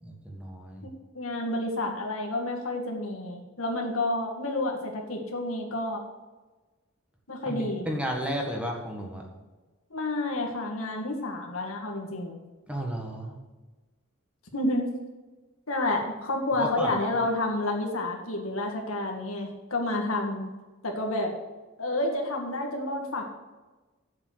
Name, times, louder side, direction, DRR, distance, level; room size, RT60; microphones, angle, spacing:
voice 1, 0.0-0.9 7.4-9.2 12.7-13.4 16.6-17.3, equal, 5° right, 0 dB, 1.6 m, -33 dB
voice 2, 0.8-6.0 7.3-7.9 9.9-12.4 14.5-14.9 15.7-20.5 20.8-21.3 21.8-23.2, left 2 dB, 75° left, 1 dB, 2.0 m, -30 dB
7.7 x 7.4 x 8.2 m, 1.2 s
head